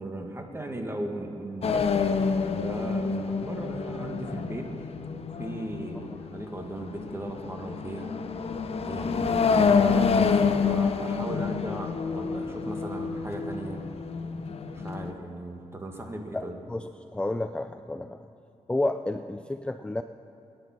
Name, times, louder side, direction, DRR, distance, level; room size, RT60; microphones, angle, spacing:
voice 1, 0.0-4.7 5.4-8.1 8.7-13.8 14.8-16.6, right 1 dB, 20° right, 3 dB, 2.0 m, -37 dB
sound 1, 1.6-15.1, left 5 dB, 60° left, 0.8 m, -28 dB
voice 2, 16.7-18.2 18.7-20.0, left 2 dB, 10° left, 8 dB, 0.4 m, -30 dB
19.5 x 10.0 x 6.1 m, 2.9 s
cardioid pair, 85°, 12 cm